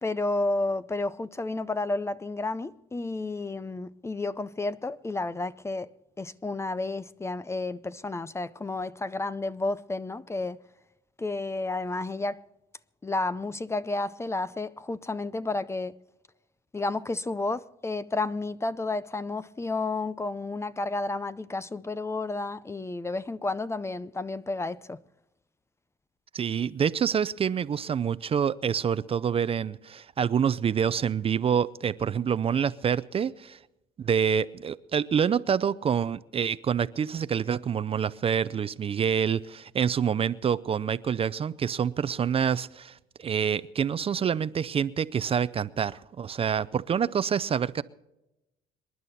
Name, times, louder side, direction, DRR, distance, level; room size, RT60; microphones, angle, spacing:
voice 1, 0.0-5.9 6.2-10.6 11.2-12.4 13.0-16.0 16.7-25.0, left 2 dB, 15° left, 0.5 m, -31 dB
voice 2, 26.3-33.6 34.0-47.8, right 7 dB, 35° right, 0.5 m, -27 dB
27.0 x 11.0 x 4.2 m
cardioid pair, 110°, 17 cm